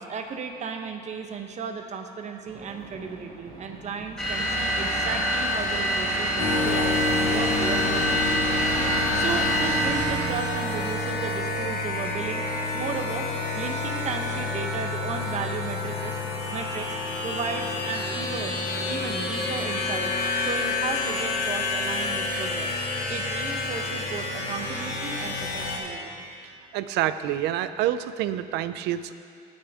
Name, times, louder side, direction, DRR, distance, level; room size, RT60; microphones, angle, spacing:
voice 1, 0.0-8.6 9.1-12.4 12.7-13.3 13.5-16.2 16.5-16.9 17.2-18.6 18.9-22.8 23.1-26.2, right 5 dB, 45° right, 5 dB, 1.0 m, -35 dB
sound 1, 2.4-9.7, right 3 dB, 70° right, 2.1 m, -46 dB
sound 2, 4.2-10.4, equal, 5° left, 2.2 m, -26 dB
sound 3, 6.4-25.8, left 2 dB, 80° left, 2.0 m, -29 dB
voice 2, 26.7-29.1, right 12 dB, 90° right, 12 dB, 0.5 m, -27 dB
18.0 x 6.4 x 3.6 m, 2.4 s
cardioid pair, 110°, 17 cm